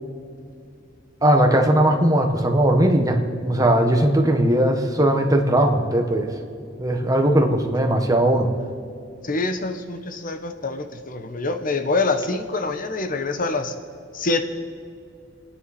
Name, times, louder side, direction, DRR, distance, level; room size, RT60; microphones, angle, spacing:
voice 1, 1.2-6.3 6.8-8.5, right 1 dB, 20° right, 3 dB, 1.4 m, -19 dB
voice 2, 9.2-13.7 14.1-14.5, left 3 dB, 45° left, 8 dB, 1.1 m, -25 dB
29.0 x 9.7 x 4.3 m, 2.3 s
head